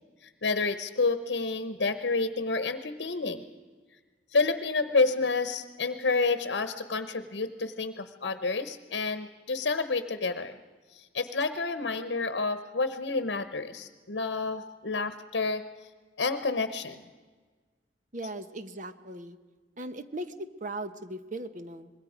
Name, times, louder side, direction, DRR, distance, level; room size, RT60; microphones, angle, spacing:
voice 1, 0.2-3.4 4.3-10.6 10.9-15.6 16.2-17.0, left 3 dB, 75° left, 10 dB, 0.9 m, -29 dB
voice 2, 18.1-19.4 19.8-21.9, right 1 dB, 45° right, 10 dB, 1.0 m, -38 dB
25.5 x 21.0 x 5.0 m, 1.4 s
head